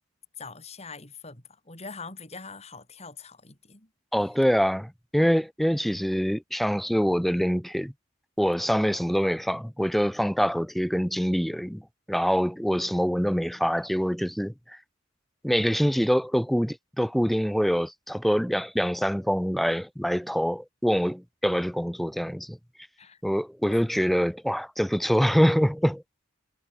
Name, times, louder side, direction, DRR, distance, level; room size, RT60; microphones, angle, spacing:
voice 1, 0.4-3.9 23.0-23.2 23.7-23.9, left 4 dB, 30° left, 4.4 m, -43 dB
voice 2, 4.1-7.9 8.4-11.8 12.1-14.8 15.4-22.6 23.2-26.0, equal, ahead, 0.6 m, -25 dB
head